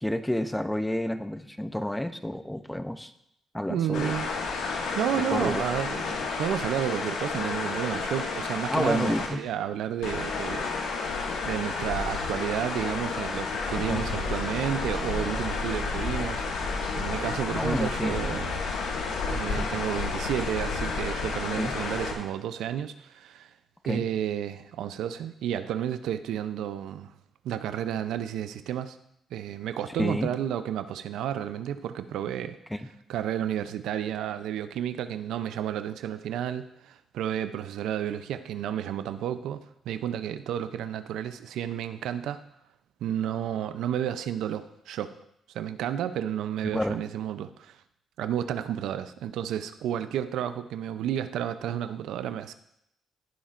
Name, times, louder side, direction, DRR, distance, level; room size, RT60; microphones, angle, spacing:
voice 1, 0.0-3.1 3.5-4.1 5.3-5.6 8.7-9.4 13.8-14.1 17.5-18.2 19.5-19.7 21.6-21.7 23.9-24.0 30.0-30.3 32.7-32.9 46.6-47.0, left 1 dB, 5° left, 10 dB, 0.7 m, -29 dB
voice 2, 3.7-4.3 4.9-11.1 11.4-16.4 16.9-18.6 19.3-23.5 23.9-27.1 27.4-29.0 29.3-32.6 33.1-42.4 43.0-45.2 45.5-47.8 48.2-52.5, right 10 dB, 85° right, 11 dB, 0.5 m, -31 dB
sound 1, 3.9-9.3 10.0-22.1, left 4 dB, 85° left, 1.8 m, -31 dB
16.5 x 7.2 x 2.5 m, 0.74 s
cardioid pair, 80°, 0 cm